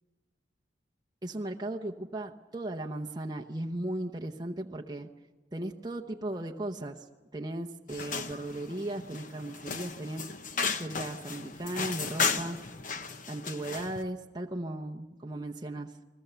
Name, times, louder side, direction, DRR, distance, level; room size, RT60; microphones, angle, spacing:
voice 1, 1.2-5.1 5.5-7.1 7.3-10.3 10.8-12.6 13.3-16.0, right 1 dB, 20° right, 1 dB, 0.8 m, -36 dB
sound 1, 7.9-14.0, left 5 dB, 45° left, 1.1 m, -35 dB
29.5 x 20.5 x 6.9 m, 1.3 s
head